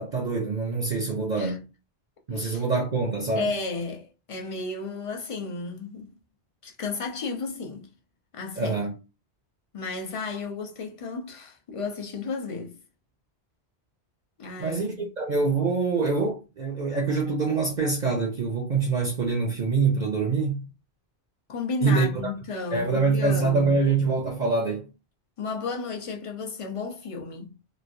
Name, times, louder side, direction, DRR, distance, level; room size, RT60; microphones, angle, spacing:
voice 1, 0.0-1.6 2.3-3.5 8.6-8.9 14.6-20.6 21.8-22.3 22.7-24.9, right 4 dB, 50° right, 0.7 m, -25 dB
voice 2, 2.3-2.6 3.4-6.1 6.6-7.9 8.3-8.7 9.7-12.8 14.4-14.8 21.5-23.9 25.4-27.5, left 4 dB, 35° left, 0.6 m, -33 dB
3.1 x 2.5 x 2.6 m
omnidirectional pair, 1.1 m